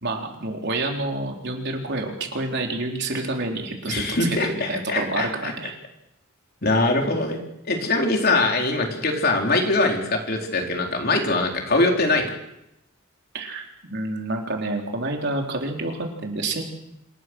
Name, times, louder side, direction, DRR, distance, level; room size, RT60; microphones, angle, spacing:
voice 1, 0.0-5.7 13.3-16.6, right 2 dB, 55° right, 2 dB, 4.1 m, -28 dB
voice 2, 3.9-5.5 6.6-7.4 7.7-12.3, left 2 dB, 45° left, 2 dB, 4.1 m, -22 dB
27.0 x 20.0 x 6.4 m, 0.84 s
head